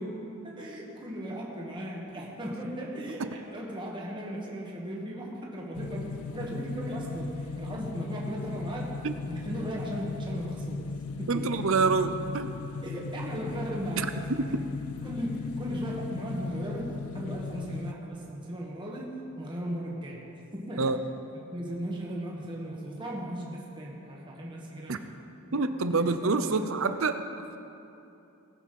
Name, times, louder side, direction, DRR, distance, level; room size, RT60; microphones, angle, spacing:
voice 1, 0.4-9.0 9.3-10.9 11.2-11.7 12.8-14.5 15.0-21.0 21.3-25.0 25.5-25.6 25.9-26.6, equal, 20° right, -3 dB, 1.6 m, -37 dB
sound 1, 5.7-17.9, left 4 dB, 85° left, 0.5 m, -37 dB
voice 2, 11.3-12.5 14.0-14.1 20.8-21.0 24.9-25.0 25.5-27.2, right 4 dB, 65° right, 10 dB, 0.7 m, -26 dB
19.5 x 7.6 x 5.4 m, 2.8 s
head